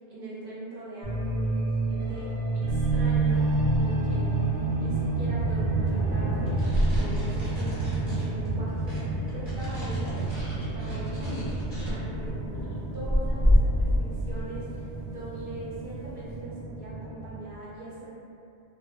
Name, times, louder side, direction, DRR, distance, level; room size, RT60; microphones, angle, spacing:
voice 1, 0.1-3.5 3.7-6.6 7.0-10.3 10.7-11.5 11.8-12.4 12.9-18.2, right 2 dB, 60° right, -8 dB, 0.7 m, -41 dB
sound 1, 1.0-17.4, right 3 dB, 85° right, 1.0 m, -29 dB
sound 2, 2.7-16.4, equal, 35° left, 0.5 m, -31 dB
sound 3, 6.5-11.9, equal, 25° right, 0.9 m, -40 dB
2.3 x 2.3 x 2.3 m, 2.6 s
omnidirectional pair, 1.2 m